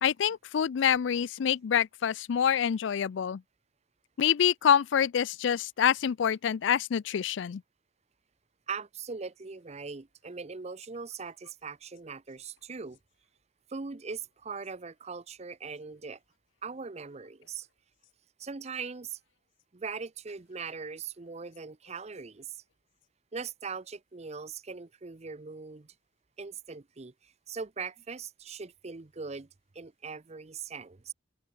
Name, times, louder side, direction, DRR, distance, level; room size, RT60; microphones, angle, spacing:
voice 1, 0.0-3.4 4.2-7.6, left 8 dB, 65° left, 0.4 m, -26 dB
voice 2, 8.7-13.0 13.7-16.2 16.6-17.7 18.4-19.2 19.7-22.6 23.3-25.9 26.4-29.5 29.7-31.1, right 5 dB, 35° right, 0.6 m, -40 dB
open air
head